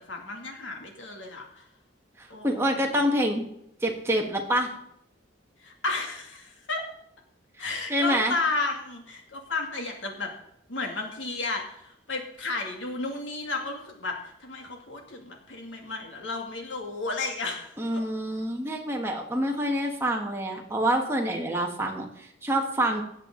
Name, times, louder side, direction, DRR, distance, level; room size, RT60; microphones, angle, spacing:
voice 1, 0.0-1.5 2.3-2.6 5.6-6.8 7.6-10.3 10.7-17.7, left 3 dB, 75° left, 2 dB, 2.4 m, -33 dB
voice 2, 2.2-3.4 3.8-4.7 7.9-8.4 17.8-23.0, right 1 dB, 15° right, 1 dB, 1.4 m, -27 dB
17.5 x 7.4 x 3.8 m, 0.76 s
head